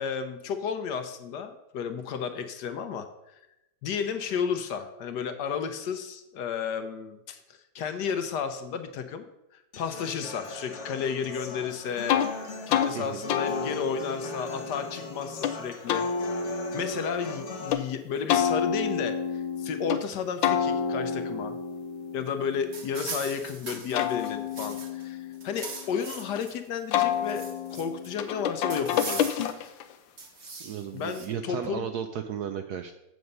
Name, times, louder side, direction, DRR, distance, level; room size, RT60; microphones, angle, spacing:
voice 1, 0.0-3.4 3.8-9.2 9.5-12.2 12.7-16.1 16.7-21.6 22.1-27.4 27.7-29.3 30.9-31.9, left 7 dB, 65° left, 8 dB, 1.2 m, -32 dB
Human voice / Acoustic guitar, 9.7-17.7, left 3 dB, 45° left, 1.1 m, -40 dB
sound 1, 12.1-12.3 12.7-12.9 13.3-15.5 15.9-17.8 18.3-20.0 20.4-23.3 23.7-26.4 26.9-29.9, left 8 dB, 85° left, 1.4 m, -29 dB
sound 2, 22.7-25.0 25.3-26.5 26.9-28.1 28.7-29.7 30.2-31.3, right 4 dB, 40° right, 1.2 m, -40 dB
voice 2, 30.6-32.9, right 8 dB, 75° right, 8 dB, 0.9 m, -34 dB
7.9 x 6.3 x 5.3 m, 0.90 s
omnidirectional pair, 2.1 m